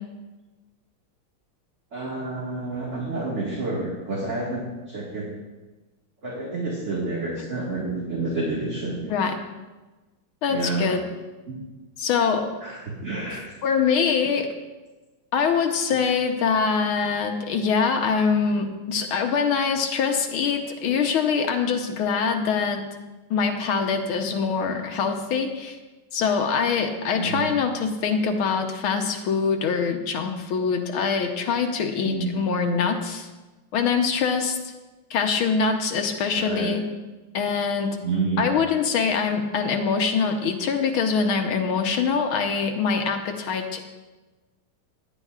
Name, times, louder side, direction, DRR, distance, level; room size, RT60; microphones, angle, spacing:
voice 1, 1.9-5.3 6.2-9.2 10.5-11.0 11.5-11.6 12.6-13.4 15.9-16.0 27.2-27.5 32.0-32.4 36.3-36.7 38.0-38.5, right 3 dB, 35° right, -5 dB, 2.0 m, -29 dB
voice 2, 10.4-11.0 12.0-12.6 13.6-14.5 15.3-22.9 23.3-25.8 26.1-33.3 33.7-34.6 35.1-36.8 37.3-38.0 38.4-43.8, left 5 dB, 75° left, 4 dB, 1.7 m, -24 dB
16.5 x 10.0 x 2.4 m, 1.2 s
omnidirectional pair, 2.4 m